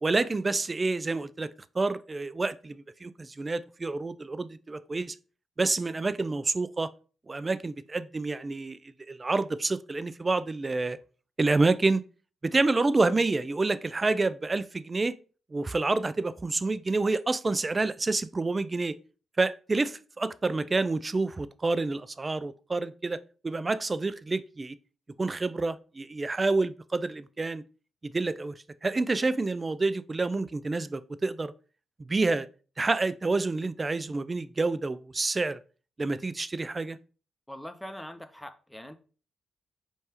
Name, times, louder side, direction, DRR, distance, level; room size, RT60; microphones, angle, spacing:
voice 1, 0.0-1.5 1.7-5.2 5.6-6.9 7.3-8.8 9.1-11.0 11.4-12.0 12.4-15.2 15.5-19.0 19.4-24.8 25.2-27.6 28.0-28.5 28.8-31.5 32.0-32.5 32.8-35.6 36.0-37.0, right 3 dB, 30° right, 0.3 m, -28 dB
voice 2, 37.5-39.0, equal, 5° left, 0.6 m, -42 dB
4.5 x 3.3 x 2.9 m
supercardioid pair, 55°, 0 cm